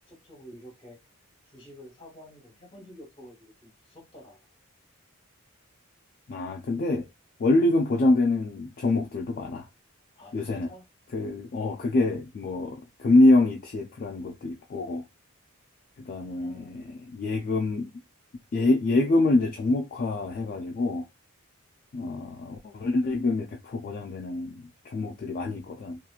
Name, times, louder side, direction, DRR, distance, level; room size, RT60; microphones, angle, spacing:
voice 1, 0.1-1.0 1.5-4.5 10.2-10.8 16.2-16.9, equal, 25° left, 1.0 m, -49 dB
voice 2, 6.3-7.1 7.4-9.7 10.3-10.7 11.1-15.0 16.0-17.9 18.5-21.0 21.9-26.0, left 2 dB, 40° left, 0.3 m, -25 dB
2.8 x 2.4 x 2.3 m
head